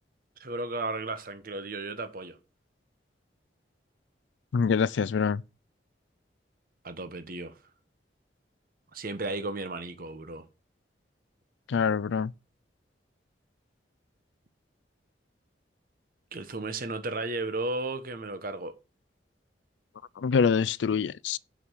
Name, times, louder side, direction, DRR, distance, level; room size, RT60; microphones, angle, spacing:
voice 1, 0.4-2.4 6.8-7.6 8.9-10.4 16.3-18.7, right 2 dB, 50° right, 1.2 m, -34 dB
voice 2, 4.5-5.4 11.7-12.3 20.2-21.4, left 6 dB, 85° left, 0.4 m, -25 dB
7.1 x 5.3 x 6.4 m
head